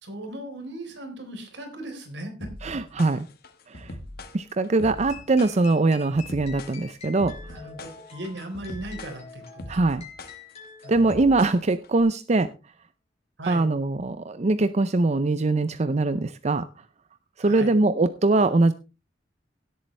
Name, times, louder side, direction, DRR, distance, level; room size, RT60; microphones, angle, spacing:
voice 1, 0.0-2.5 7.4-9.8 10.8-11.0 13.4-13.7 17.4-17.7, right 1 dB, 75° right, 4 dB, 3.9 m, -37 dB
sound 1, 2.4-12.0, left 1 dB, 55° left, 1.5 m, -41 dB
voice 2, 2.6-3.3 3.7-4.0 4.3-7.4 9.7-10.0 10.9-12.5 13.4-16.7 17.4-18.7, right 2 dB, 40° right, 12 dB, 0.5 m, -22 dB
sound 2, 4.8-11.6, left 6 dB, 35° left, 4.8 m, -47 dB
17.0 x 8.4 x 3.3 m, 0.30 s
head